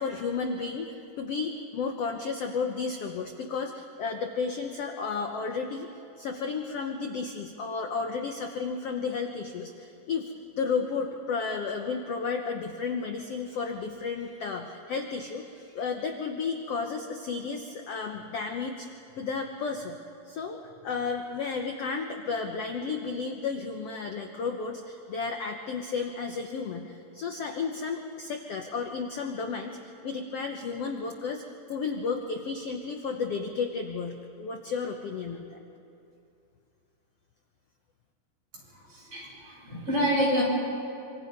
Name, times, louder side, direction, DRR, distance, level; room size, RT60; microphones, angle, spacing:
voice 1, 0.0-5.9 6.2-18.9 19.2-20.0 20.2-35.6, left 5 dB, 70° left, 4 dB, 1.5 m, -33 dB
voice 2, 38.7-40.4, equal, 40° right, -5 dB, 8.4 m, -28 dB
26.0 x 25.5 x 5.4 m, 2.6 s
omnidirectional pair, 4.1 m